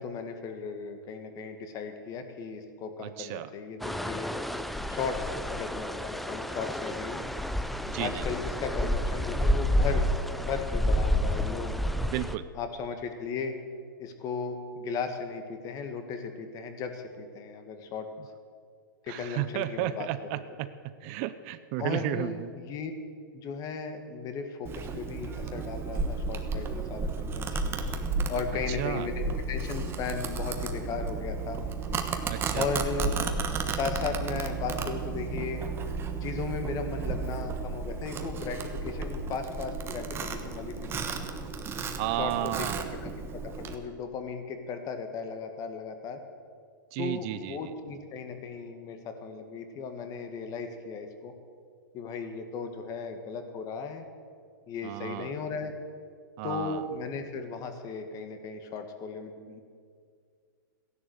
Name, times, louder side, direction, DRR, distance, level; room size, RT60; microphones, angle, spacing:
voice 1, 0.0-4.3 4.9-7.2 8.0-11.8 12.6-13.5 14.0-18.1 19.0-20.4 21.8-22.9 23.3-28.0 28.3-31.6 32.5-33.1 33.7-35.7 36.2-41.3 42.2-42.7 43.0-46.2 47.0-51.3 51.9-54.1 54.7-55.7 56.4-59.6, left 5 dB, 30° left, 7 dB, 1.8 m, -36 dB
voice 2, 3.0-3.5 7.9-8.3 12.1-12.5 19.1-22.5 28.7-29.1 32.3-32.7 42.0-43.0 46.9-47.7 54.8-55.3 56.4-56.8, right 14 dB, 45° right, 13 dB, 0.6 m, -33 dB
sound 1, 3.8-12.4, equal, ahead, 0.5 m, -29 dB
Domestic sounds home sounds, 24.6-43.7, right 4 dB, 20° right, 1.2 m, -33 dB
15.0 x 11.0 x 8.1 m, 2.1 s
hypercardioid pair, 135°, 11 cm